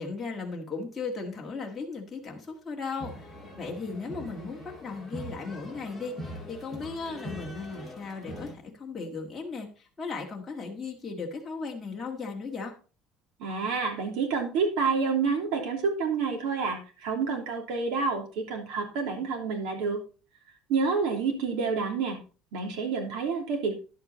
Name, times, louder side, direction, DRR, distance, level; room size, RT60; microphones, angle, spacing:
voice 1, 0.0-3.1 3.6-12.7, left 4 dB, 10° left, -2 dB, 1.7 m, -36 dB
sound 1, 3.0-8.5, equal, 5° right, 2.4 m, -42 dB
voice 2, 13.4-20.0 20.7-22.2 22.5-23.8, right 5 dB, 65° right, 3 dB, 3.2 m, -28 dB
11.0 x 8.2 x 4.1 m, 0.36 s
cardioid pair, 175°, 0 cm